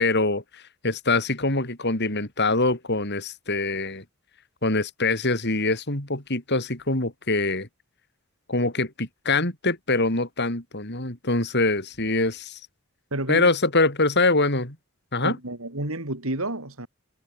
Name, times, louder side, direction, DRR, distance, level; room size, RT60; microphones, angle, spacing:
voice 1, 0.0-4.0 4.6-7.7 8.5-12.6 13.3-14.8 15.1-15.4, left 3 dB, 50° left, 5.5 m, -24 dB
voice 2, 13.1-13.5 15.2-16.9, right 1 dB, 70° right, 4.0 m, -30 dB
head